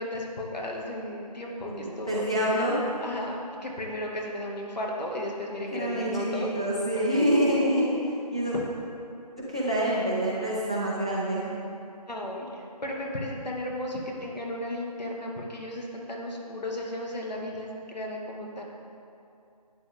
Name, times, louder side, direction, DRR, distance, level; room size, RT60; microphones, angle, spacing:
voice 1, 0.0-2.3 3.0-6.5 6.9-7.4 12.1-18.6, left 1 dB, 85° left, -1 dB, 2.2 m, -34 dB
voice 2, 1.7-2.9 5.7-7.9 8.3-8.5 9.4-11.5, equal, 10° right, -7 dB, 0.5 m, -26 dB
12.0 x 9.0 x 3.7 m, 2.6 s
figure-of-eight pair, 170°, 21 cm